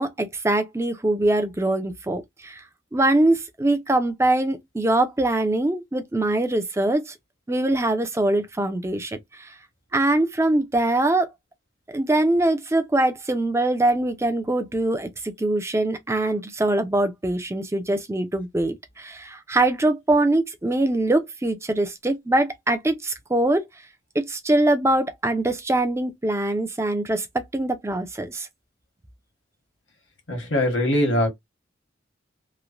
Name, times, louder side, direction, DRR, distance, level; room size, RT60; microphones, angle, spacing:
voice 1, 0.0-2.6 2.9-7.1 7.5-9.5 9.9-11.3 11.9-23.7 24.1-28.5, right 2 dB, 15° right, 0.4 m, -23 dB
voice 2, 30.3-31.3, left 1 dB, 80° left, 1.3 m, -21 dB
3.0 x 2.1 x 2.5 m
head